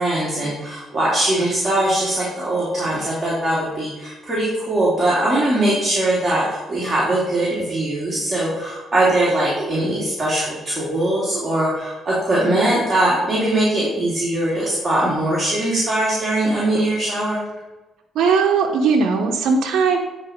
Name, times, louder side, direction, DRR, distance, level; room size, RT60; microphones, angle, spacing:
voice 1, 0.0-17.4, right 1 dB, 25° right, -7 dB, 2.7 m, -21 dB
voice 2, 18.1-20.0, right 5 dB, 75° right, 1 dB, 0.9 m, -18 dB
9.4 x 4.2 x 5.1 m, 1.2 s
cardioid pair, 90°, 0 cm